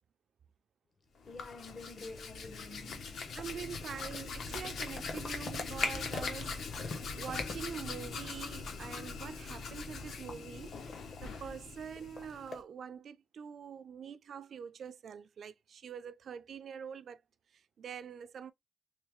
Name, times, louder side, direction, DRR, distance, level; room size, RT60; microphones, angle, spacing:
Hands, 1.2-12.6, left 4 dB, 90° left, 0.9 m, -41 dB
voice 1, 1.2-3.3, left 3 dB, 40° left, 0.6 m, -49 dB
sound 1, 3.3-8.4 8.7-8.8 9.4-11.4 12.0-12.6, left 3 dB, 65° left, 0.9 m, -45 dB
voice 2, 3.4-17.2 17.5-18.5, right 7 dB, 70° right, 0.3 m, -45 dB
3.2 x 3.1 x 3.4 m
wide cardioid pair, 155°, 0 cm